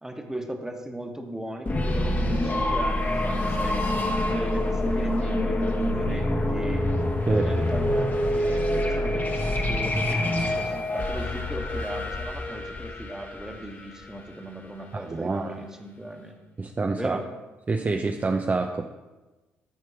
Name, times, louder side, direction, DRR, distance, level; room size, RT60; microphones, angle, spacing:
voice 1, 0.0-3.9 4.3-6.9 7.3-16.3 16.9-17.3, right 1 dB, 10° right, 4 dB, 1.4 m, -37 dB
sound 1, 1.7-14.4, left 1 dB, 30° left, 1.5 m, -26 dB
voice 2, 15.1-15.6 16.6-17.2 17.7-18.9, right 3 dB, 30° right, 4 dB, 0.6 m, -27 dB
12.5 x 4.4 x 4.9 m, 1.1 s
hypercardioid pair, 45°, 6 cm